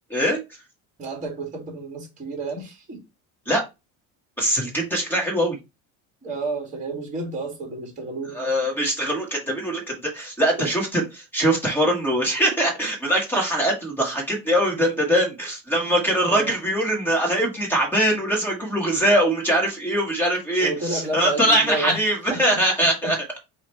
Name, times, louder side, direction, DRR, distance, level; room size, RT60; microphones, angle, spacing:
voice 1, 1.0-3.0 6.2-8.5 10.6-10.7 16.3-16.5 20.6-22.0 22.3-22.4 22.8-23.1, right 2 dB, 20° right, 2.0 m, -31 dB
voice 2, 4.4-5.6 8.3-23.2, right 1 dB, 5° left, 1.3 m, -22 dB
4.8 x 2.5 x 4.4 m
cardioid pair, 175°, 36 cm